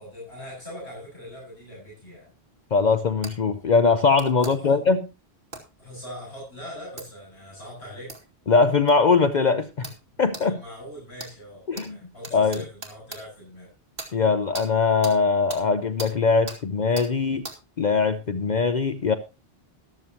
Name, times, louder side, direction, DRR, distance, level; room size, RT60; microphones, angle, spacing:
voice 1, 0.0-2.3 4.4-4.8 5.8-8.1 10.4-13.7, equal, 75° left, -5 dB, 7.9 m, -41 dB
voice 2, 2.7-5.0 8.5-9.9 10.2-10.6 11.7-12.0 12.3-12.6 14.1-17.4 17.8-19.1, left 4 dB, 50° left, 10 dB, 0.8 m, -21 dB
sound 1, 3.2-3.4 4.2-4.5 5.5-5.7 7.0-7.1 8.1-8.2 8.9-9.0 9.8-10.0 10.3-10.5 11.2-11.3 11.8-11.9 12.2-13.2 14.0-14.1 14.5-14.7 15.0-15.2 15.5-15.6 16.0-16.1 16.5-16.6 17.0-17.1 17.4-17.6, right 2 dB, 60° right, 2.4 m, -37 dB
14.0 x 12.5 x 2.9 m, 0.27 s
omnidirectional pair, 1.1 m